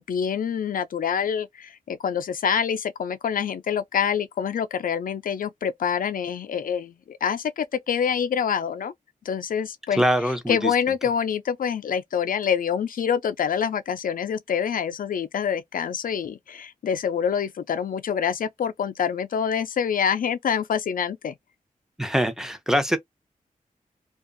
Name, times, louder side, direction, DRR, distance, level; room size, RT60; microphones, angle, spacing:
voice 1, 0.0-8.9 9.2-10.0 10.5-21.4, left 7 dB, 80° left, 0.4 m, -26 dB
voice 2, 10.0-10.7 22.0-23.0, equal, 5° right, 0.5 m, -23 dB
2.5 x 2.3 x 2.5 m
wide cardioid pair, 120°, 14 cm